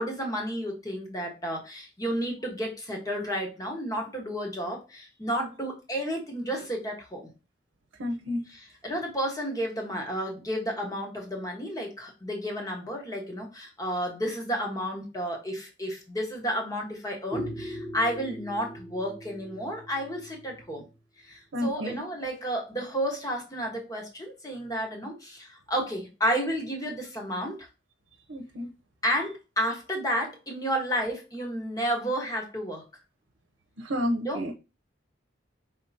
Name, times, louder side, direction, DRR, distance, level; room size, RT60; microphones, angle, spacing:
voice 1, 0.0-7.3 8.5-20.8 21.2-27.7 29.0-32.8 34.2-34.5, equal, 20° left, 1.3 m, -31 dB
voice 2, 8.0-8.4 21.5-22.0 28.3-28.7 33.8-34.5, left 1 dB, 80° right, 0.8 m, -30 dB
5.1 x 3.7 x 2.8 m
head